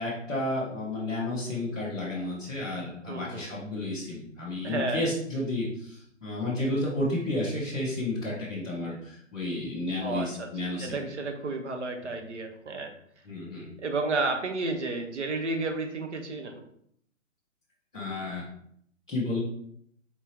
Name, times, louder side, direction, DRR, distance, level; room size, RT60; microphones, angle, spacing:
voice 1, 0.0-11.1 13.2-13.7 17.9-18.4 19.1-19.4, left 1 dB, 5° left, -14 dB, 0.4 m, -32 dB
voice 2, 3.1-3.5 4.6-5.0 10.0-10.5 10.8-12.9 13.8-16.6, right 3 dB, 60° right, 4 dB, 1.0 m, -31 dB
4.4 x 2.9 x 3.5 m, 0.67 s
figure-of-eight pair, 140°, 39 cm